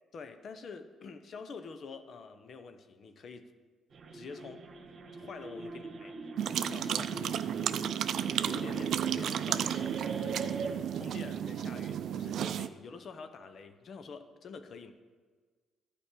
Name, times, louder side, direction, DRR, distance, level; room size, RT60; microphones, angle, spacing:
voice 1, 0.1-3.5 4.1-4.7 5.1-6.1 6.6-7.7 8.4-14.9, left 5 dB, 55° left, 9 dB, 0.9 m, -47 dB
sound 1, 3.9-10.7, right 3 dB, 50° right, 1.4 m, -42 dB
sound 2, 6.4-12.7, right 9 dB, 70° right, 0.4 m, -33 dB
11.5 x 5.2 x 8.3 m, 1.5 s
cardioid pair, 90°, 0 cm